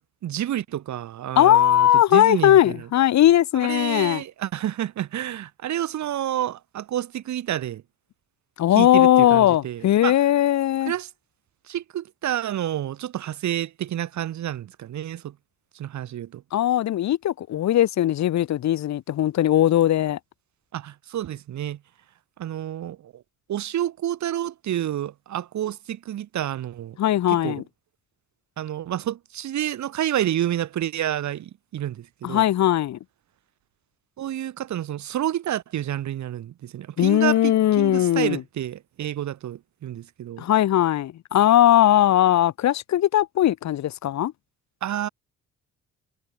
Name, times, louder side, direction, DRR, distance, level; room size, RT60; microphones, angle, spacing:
voice 1, 0.0-2.7 3.6-7.8 8.8-10.2 10.9-11.1 11.7-15.3 15.7-16.4 20.7-21.8 22.4-23.2 23.5-27.0 27.3-27.6 28.6-32.4 34.2-40.4 44.8-45.1, right 11 dB, 70° right, 2.1 m, -29 dB
voice 2, 1.4-4.2 8.6-10.9 16.5-20.2 27.0-27.6 32.2-33.0 37.0-38.4 40.4-44.3, left 12 dB, 65° left, 1.1 m, -19 dB
cardioid pair, 90°, 30 cm